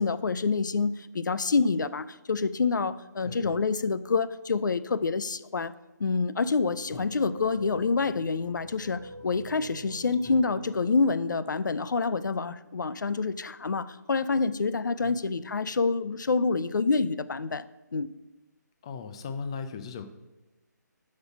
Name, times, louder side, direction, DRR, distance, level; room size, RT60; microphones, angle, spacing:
voice 1, 0.0-5.7 6.0-18.1, left 4 dB, 85° left, 15 dB, 0.5 m, -27 dB
voice 2, 3.2-3.6 6.9-7.1 10.2-10.4 14.9-15.2 18.8-20.0, left 5 dB, 15° left, 9 dB, 0.4 m, -38 dB
sound 1, 6.6-12.7, right 2 dB, 75° right, 0.8 m, -48 dB
8.0 x 5.4 x 5.8 m, 1.1 s
hypercardioid pair, 165°, 10 cm